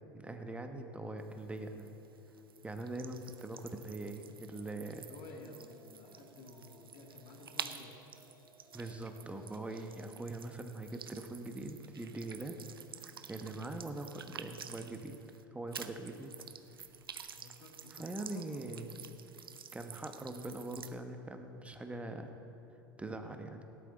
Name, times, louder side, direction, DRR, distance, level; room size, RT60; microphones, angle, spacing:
voice 1, 0.1-1.9 2.6-5.1 8.7-12.6 13.3-15.2 15.5-16.3 17.9-19.0 19.7-22.3 23.0-23.6, right 2 dB, 10° right, 6 dB, 1.0 m, -42 dB
sound 1, 1.2-15.4 15.7-20.9, right 7 dB, 80° right, 0.6 m, -50 dB
sound 2, 4.4-10.1, right 1 dB, 55° right, 3.0 m, -64 dB
voice 2, 5.1-8.1 17.3-18.8, left 2 dB, 50° left, 2 dB, 1.9 m, -53 dB
17.5 x 11.5 x 4.0 m, 2.9 s
figure-of-eight pair, 80°, 12 cm